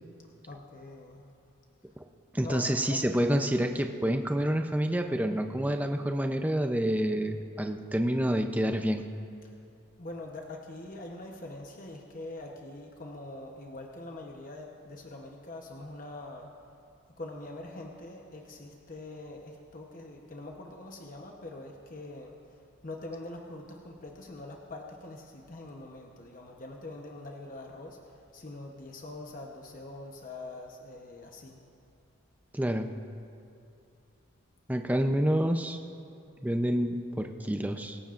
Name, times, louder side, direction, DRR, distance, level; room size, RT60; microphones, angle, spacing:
voice 1, 0.5-1.2 2.4-3.0 9.4-9.5 10.0-16.5 17.2-22.6 22.8-31.6, left 2 dB, 40° left, 1 dB, 1.0 m, -44 dB
voice 2, 2.3-9.0 32.5-32.9 34.7-35.8 36.4-38.0, equal, 10° right, 5 dB, 0.6 m, -28 dB
25.0 x 15.0 x 2.5 m, 2.7 s
head